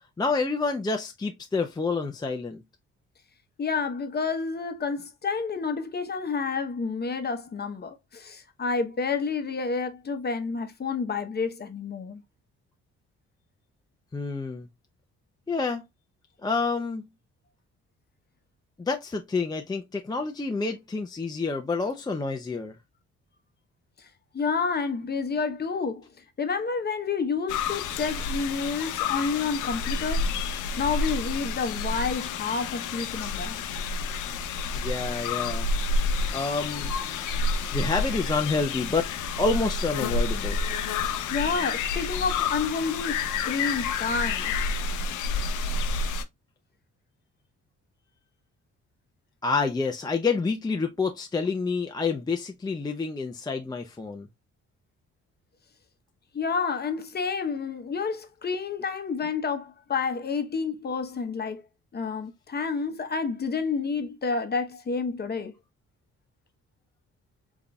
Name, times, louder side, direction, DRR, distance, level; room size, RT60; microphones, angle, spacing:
voice 1, 0.2-2.6 14.1-14.7 15.5-15.8 16.4-17.0 18.8-22.8 34.8-35.7 36.3-36.9 37.7-39.1 39.4-40.6 49.4-54.3, left 4 dB, 15° left, 0.5 m, -28 dB
voice 2, 3.6-12.2 24.0-24.1 24.3-26.1 26.4-30.3 30.8-33.6 41.3-44.6 56.3-61.6 61.9-65.5, left 5 dB, 35° left, 0.8 m, -29 dB
sound 1, 27.5-46.2, left 4 dB, 80° left, 0.6 m, -29 dB
3.8 x 3.5 x 2.2 m
cardioid pair, 90°, 30 cm